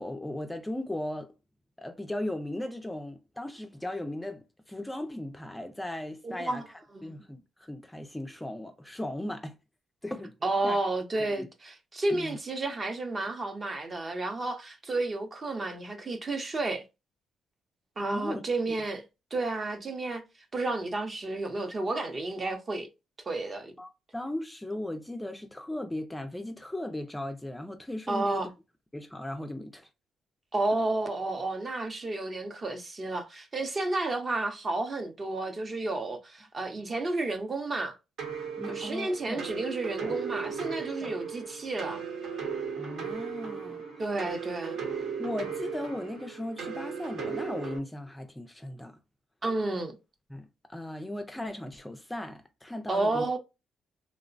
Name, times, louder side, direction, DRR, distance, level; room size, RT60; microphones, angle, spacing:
voice 1, 0.0-1.3 1.8-6.6 7.0-9.5 10.0-10.3 10.6-10.8 11.2-11.5 12.1-12.4 18.1-18.4 23.8-28.5 28.9-29.9 38.6-39.4 40.0-40.2 41.0-41.1 42.8-43.8 45.2-49.0 50.3-53.3, left 1 dB, 10° left, 0.3 m, -37 dB
voice 2, 6.2-6.7 6.9-7.1 10.4-16.8 18.0-19.0 19.3-20.2 20.5-22.9 23.3-23.7 28.1-28.5 30.5-38.0 38.7-42.0 44.0-44.8 49.4-50.0 52.9-53.4, right 2 dB, 35° right, 0.6 m, -31 dB
sound 1, 38.2-47.8, right 6 dB, 70° right, 0.9 m, -36 dB
3.0 x 2.0 x 2.4 m
cardioid pair, 90°, 0 cm